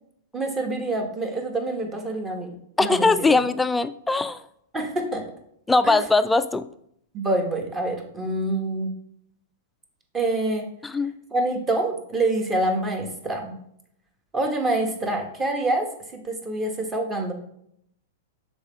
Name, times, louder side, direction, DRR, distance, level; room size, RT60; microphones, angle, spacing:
voice 1, 0.3-3.4 4.7-5.2 5.8-6.0 7.1-8.9 10.1-10.7 11.3-13.5 14.3-17.3, right 2 dB, 20° right, 3 dB, 1.3 m, -26 dB
voice 2, 2.8-4.4 5.7-6.7 10.8-11.2, left 3 dB, 10° left, 12 dB, 0.3 m, -21 dB
6.3 x 4.1 x 3.7 m, 0.72 s
hypercardioid pair, 115°, 0 cm